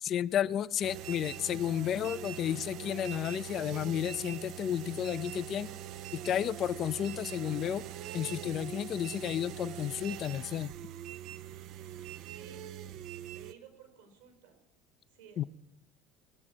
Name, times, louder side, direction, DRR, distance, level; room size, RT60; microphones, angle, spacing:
voice 1, 0.0-5.7 6.1-7.8 8.1-10.7 15.4-15.5, left 10 dB, 45° left, 17 dB, 0.6 m, -32 dB
sound 1, 0.8-13.5, right 11 dB, 55° right, 0.6 m, -43 dB
voice 2, 12.2-12.6 13.3-14.6 15.1-15.4, right 8 dB, 75° right, 3 dB, 4.1 m, -55 dB
21.5 x 8.3 x 7.5 m, 0.83 s
figure-of-eight pair, 65°, 0 cm